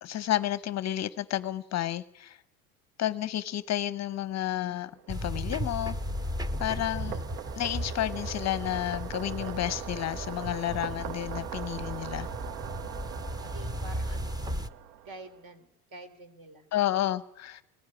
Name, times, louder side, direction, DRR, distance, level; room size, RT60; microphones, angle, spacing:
voice 1, 0.0-2.4 3.0-6.0 6.6-7.2 7.6-12.3 16.7-17.6, left 13 dB, 35° left, 16 dB, 0.8 m, -31 dB
sound 1, 4.7-15.4, right 11 dB, 85° right, 0.8 m, -42 dB
sound 2, 5.1-14.7, equal, 10° right, 0.8 m, -36 dB
voice 2, 12.8-13.1 13.4-14.6 15.0-16.7, right 2 dB, 45° right, 11 dB, 3.5 m, -48 dB
20.0 x 16.5 x 9.7 m, 0.85 s
hypercardioid pair, 85°, 47 cm